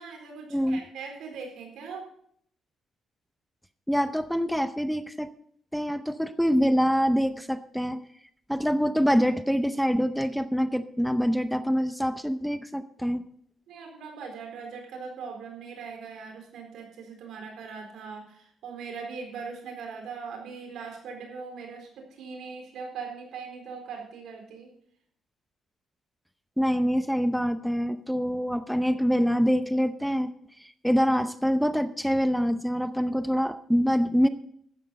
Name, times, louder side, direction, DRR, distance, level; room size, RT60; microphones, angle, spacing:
voice 1, 0.0-2.1 13.7-24.7, right 5 dB, 80° right, 3 dB, 4.2 m, -40 dB
voice 2, 0.5-0.8 3.9-5.3 5.7-8.0 8.5-13.2 26.6-30.3 30.6-34.3, equal, ahead, 11 dB, 0.7 m, -25 dB
13.5 x 9.2 x 5.2 m, 0.65 s
cardioid pair, 90°, 0 cm